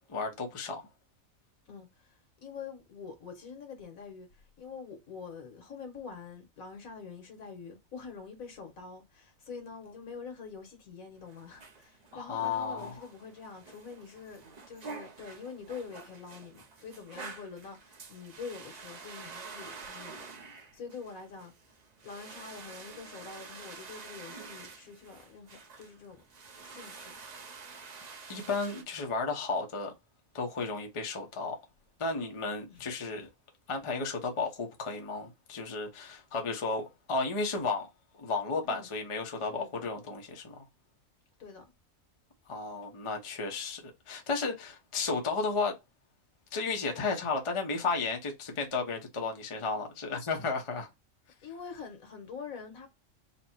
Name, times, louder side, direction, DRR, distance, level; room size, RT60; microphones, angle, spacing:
voice 1, 0.1-0.9 12.1-12.9 28.3-29.9 30.3-31.6 32.0-33.3 33.7-37.9 38.1-40.6 42.5-45.8 46.5-50.9, left 4 dB, 30° left, 0.7 m, -33 dB
voice 2, 1.7-4.3 4.6-21.5 22.0-26.2 26.6-27.2 32.7-32.8 38.7-38.9 39.5-39.9 41.4-41.6 51.4-52.9, left 5 dB, 80° left, 1.6 m, -45 dB
sound 1, 11.2-28.8, right 4 dB, 45° right, 0.6 m, -48 dB
4.1 x 2.1 x 4.3 m
omnidirectional pair, 1.4 m